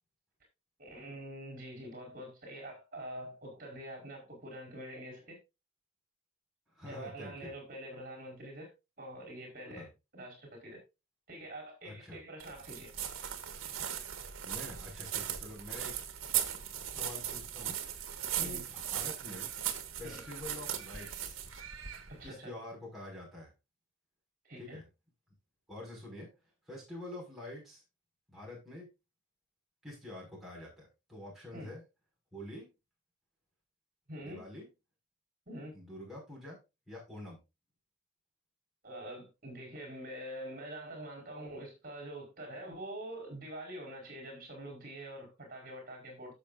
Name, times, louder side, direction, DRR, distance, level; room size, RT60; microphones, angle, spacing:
voice 1, 0.8-5.4 6.9-8.7 9.0-10.8 11.3-12.9 18.4-18.6 20.0-20.2 22.1-22.5 24.4-24.8 31.5-31.7 34.1-34.4 35.5-35.7 38.8-46.3, right 1 dB, 40° right, 5.0 m, -45 dB
voice 2, 6.7-7.5 9.7-9.9 11.8-12.2 14.4-16.0 16.9-19.5 20.0-21.4 22.2-23.5 24.6-24.8 25.7-26.3 26.7-27.8 28.3-28.9 29.8-31.8 32.3-32.7 34.2-34.7 35.7-36.6 36.9-37.4, left 1 dB, ahead, 5.6 m, -47 dB
sound 1, 12.4-22.3, right 10 dB, 70° right, 1.7 m, -38 dB
16.0 x 7.1 x 2.6 m
head